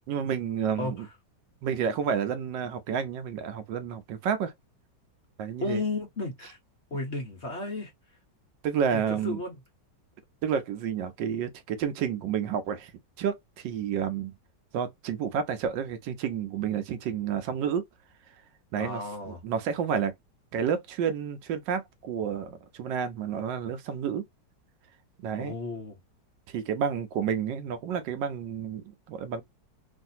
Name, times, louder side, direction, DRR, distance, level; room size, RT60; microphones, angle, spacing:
voice 1, 0.1-1.0 1.6-4.5 5.4-5.8 8.6-9.4 10.4-12.9 13.2-14.3 14.7-17.8 18.7-19.0 19.3-20.1 20.5-24.2 25.2-25.5 26.5-29.4, right 7 dB, 80° right, 1.4 m, -30 dB
voice 2, 5.6-6.6 6.9-7.9 8.9-9.6 18.8-19.4 25.4-26.0, left 3 dB, 45° left, 1.0 m, -33 dB
3.3 x 2.6 x 2.7 m
omnidirectional pair, 2.0 m